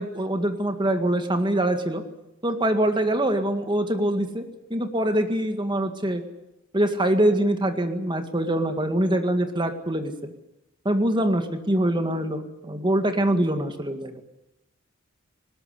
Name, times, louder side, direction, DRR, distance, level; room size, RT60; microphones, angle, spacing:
voice 1, 0.0-2.0 2.4-4.4 4.7-6.2 6.7-10.3 10.9-14.2, right 1 dB, 25° right, 7 dB, 1.9 m, -24 dB
20.0 x 19.5 x 9.9 m, 0.89 s
head